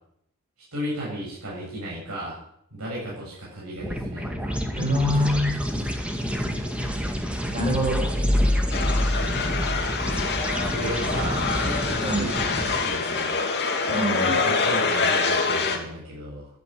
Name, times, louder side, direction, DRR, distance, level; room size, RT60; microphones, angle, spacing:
voice 1, 0.7-2.4 2.7-4.6 9.1-13.3 14.4-16.5, right 1 dB, 75° right, -6 dB, 7.8 m, -35 dB
sound 1, 3.8-13.2, equal, 5° right, 2.1 m, -30 dB
voice 2, 4.7-5.6 7.5-8.2 12.0-12.3 13.9-14.4, equal, 30° right, 0 dB, 7.1 m, -24 dB
sound 2, 7.8-10.5, left 1 dB, 35° left, 2.6 m, -25 dB
sound 3, 8.7-15.8, left 4 dB, 50° left, 2.6 m, -25 dB
14.5 x 9.8 x 9.3 m, 0.73 s
head